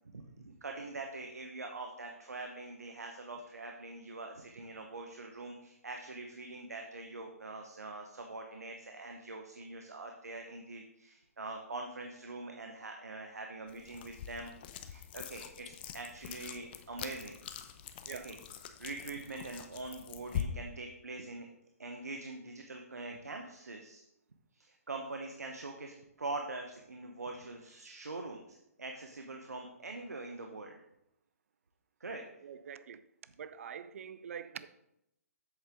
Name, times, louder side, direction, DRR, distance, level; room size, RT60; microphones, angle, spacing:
voice 1, 0.0-14.5 14.8-17.4 18.1-18.4 18.8-21.5 21.8-24.0 24.5-30.8 32.0-32.2, right 2 dB, 80° right, 1.0 m, -44 dB
sound 1, 13.7-20.4, left 10 dB, 40° left, 0.7 m, -44 dB
voice 2, 32.4-33.0 33.4-34.7, right 7 dB, 60° right, 0.5 m, -45 dB
7.9 x 7.4 x 3.6 m
figure-of-eight pair, 135°, 8 cm